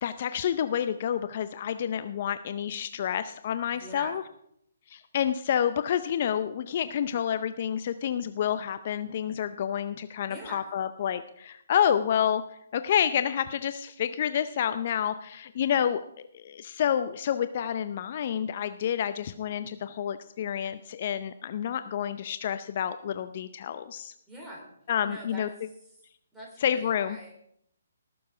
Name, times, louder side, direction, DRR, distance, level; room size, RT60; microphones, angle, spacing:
voice 1, 0.0-4.2 4.9-12.4 12.7-16.0 16.3-24.1 24.9-25.5 26.6-27.2, left 9 dB, 45° left, 11 dB, 0.6 m, -29 dB
voice 2, 3.7-4.2 10.2-10.7 24.3-24.7 25.0-26.0 26.3-27.3, right 1 dB, 5° right, -3 dB, 4.1 m, -44 dB
18.5 x 7.1 x 5.0 m, 0.73 s
figure-of-eight pair, 140°, 0 cm